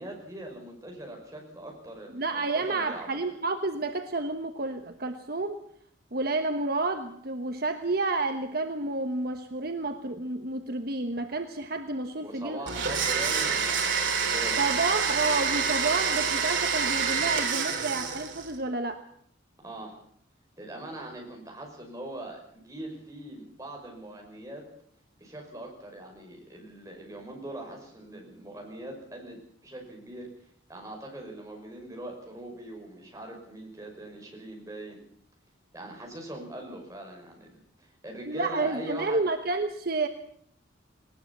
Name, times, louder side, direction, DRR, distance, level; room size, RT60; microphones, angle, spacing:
voice 1, 0.0-3.1 12.2-14.6 19.6-20.0 20.6-24.6 25.2-30.3 30.7-35.0 35.7-39.2, right 1 dB, 15° right, 0 dB, 5.8 m, -41 dB
voice 2, 2.1-5.6 6.1-12.6 14.6-19.0 38.3-40.1, right 3 dB, 50° right, 7 dB, 1.2 m, -30 dB
Domestic sounds home sounds, 12.7-18.5, right 6 dB, 80° right, 3.3 m, -27 dB
19.5 x 19.5 x 7.3 m, 0.65 s
head